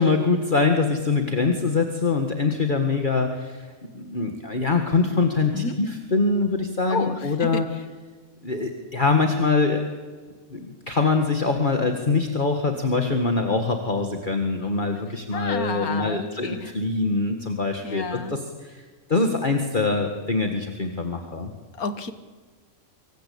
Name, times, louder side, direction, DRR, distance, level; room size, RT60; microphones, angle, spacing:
voice 1, 0.0-3.7 3.9-7.7 8.4-9.8 10.5-18.8 19.1-21.5, left 3 dB, 35° left, 4 dB, 1.9 m, -23 dB
voice 2, 6.9-7.6 15.3-16.7 17.8-18.4 21.8-22.1, left 4 dB, 80° left, 10 dB, 1.9 m, -31 dB
25.5 x 24.0 x 8.6 m, 1.4 s
omnidirectional pair, 1.5 m